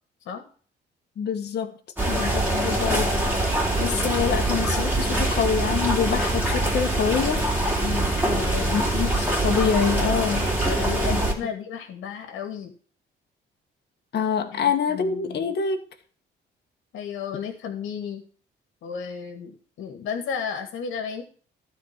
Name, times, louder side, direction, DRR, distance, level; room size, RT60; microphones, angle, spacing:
voice 1, 1.2-1.7 2.1-7.5 8.7-10.5 11.1-11.2 14.1-15.8, left 7 dB, 55° left, 5 dB, 1.6 m, -26 dB
sound 1, 2.0-11.3, right 1 dB, 10° right, 3.4 m, -24 dB
voice 2, 7.8-9.1 10.6-12.7 14.5-15.5 16.9-18.2 18.8-21.2, left 7 dB, 80° left, 6 dB, 1.9 m, -33 dB
12.5 x 4.5 x 7.4 m, 0.42 s
cardioid pair, 90°, 20 cm